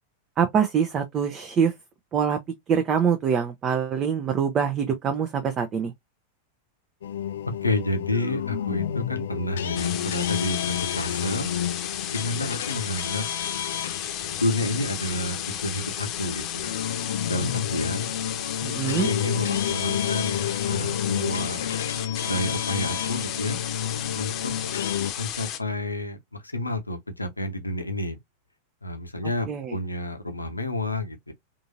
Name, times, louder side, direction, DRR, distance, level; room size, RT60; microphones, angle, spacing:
voice 1, 0.4-1.7 2.1-2.4 2.7-5.9 18.6-19.1 29.5-29.8, right 7 dB, 30° right, 0.5 m, -24 dB
sound 1, 7.0-25.1, left 9 dB, 65° left, 0.3 m, -30 dB
voice 2, 7.6-10.6 10.9-11.5 12.1-13.2 14.4-16.7 17.3-18.1 19.0-21.6 22.2-23.6 24.1-24.5 25.2-26.2 26.5-28.2 28.8-31.3, left 1 dB, 85° left, 0.7 m, -29 dB
sound 2, 9.7-25.6, left 10 dB, 35° left, 0.8 m, -33 dB
3.7 x 2.6 x 2.6 m
figure-of-eight pair, 90°, 0 cm